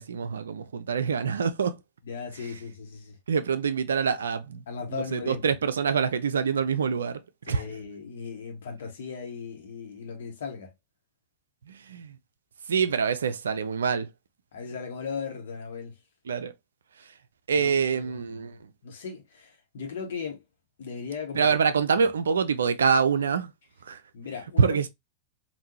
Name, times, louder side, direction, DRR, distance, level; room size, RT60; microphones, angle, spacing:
voice 1, 0.0-1.8 3.3-4.6 4.9-7.6 11.6-12.2 12.7-14.1 16.3-16.5 17.0-17.1 17.5-18.7 21.4-23.5 23.8-24.0 24.6-24.9, right 6 dB, 70° right, 0.4 m, -26 dB
voice 2, 2.0-3.2 4.7-5.4 7.5-10.7 14.5-16.0 17.5-20.4 20.8-21.5 21.9-22.1 24.1-24.9, left 5 dB, 60° left, 1.3 m, -37 dB
3.5 x 2.6 x 2.7 m
figure-of-eight pair, 90°, 0 cm